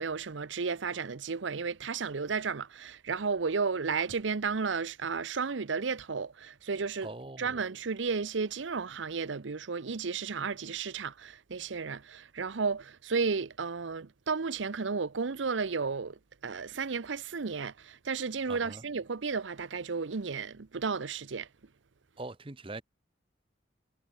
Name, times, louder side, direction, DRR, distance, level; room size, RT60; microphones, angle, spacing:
voice 1, 0.0-7.1 7.4-21.5, right 5 dB, 80° right, 0.7 m, -33 dB
voice 2, 7.0-7.6 18.5-18.8 22.2-22.8, right 2 dB, 30° right, 0.9 m, -42 dB
head